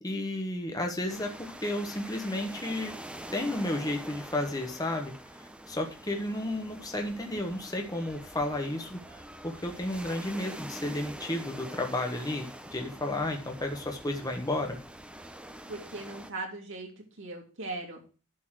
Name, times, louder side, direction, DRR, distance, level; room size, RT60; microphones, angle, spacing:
voice 1, 0.0-3.0 3.3-5.1 5.4-14.8, left 1 dB, 15° left, 3 dB, 1.4 m, -32 dB
sound 1, 1.1-16.3, right 1 dB, 5° right, 0.8 m, -45 dB
voice 2, 15.7-16.9 17.2-18.0, right 2 dB, 60° right, 1 dB, 3.0 m, -38 dB
11.0 x 4.2 x 6.5 m, 0.34 s
head